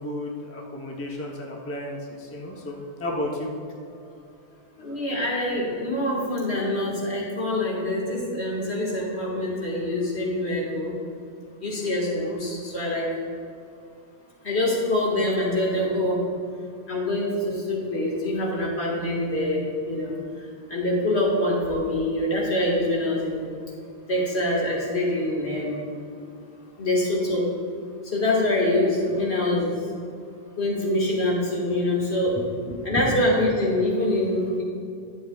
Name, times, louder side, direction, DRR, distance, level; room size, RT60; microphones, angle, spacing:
voice 1, 0.0-3.5 32.6-33.0, left 1 dB, 15° left, -2 dB, 0.7 m, -32 dB
voice 2, 4.8-10.9 11.6-13.1 14.4-16.2 16.9-23.4 24.1-25.8 26.8-27.5 28.0-29.8 30.6-32.4 32.8-34.6, left 1 dB, 65° left, -4 dB, 2.0 m, -25 dB
11.5 x 7.7 x 2.3 m, 2.4 s
omnidirectional pair, 1.2 m